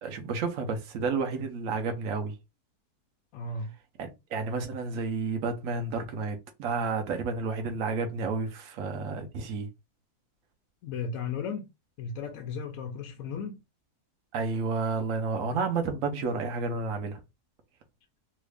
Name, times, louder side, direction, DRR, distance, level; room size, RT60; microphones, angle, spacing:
voice 1, 0.0-2.4 4.0-9.7 14.3-17.2, right 4 dB, 60° right, 1.1 m, -31 dB
voice 2, 3.3-3.7 10.8-11.7 12.0-13.6, left 5 dB, 70° left, 0.9 m, -35 dB
3.1 x 2.4 x 3.3 m
omnidirectional pair, 1.7 m